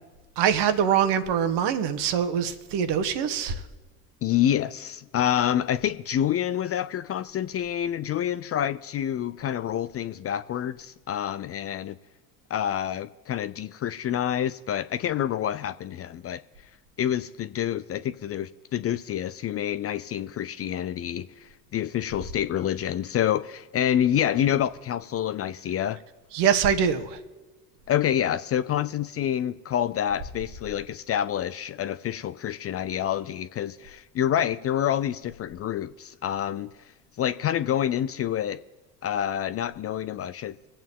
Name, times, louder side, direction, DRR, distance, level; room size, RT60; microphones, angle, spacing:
voice 1, 0.4-3.6 26.3-27.2, right 8 dB, 60° right, 1.4 m, -24 dB
voice 2, 4.2-12.0 12.5-16.4 17.0-26.0 27.9-36.7 37.2-38.6 39.0-40.5, left 10 dB, 30° left, 0.4 m, -27 dB
25.0 x 8.6 x 3.7 m
hypercardioid pair, 70°, 47 cm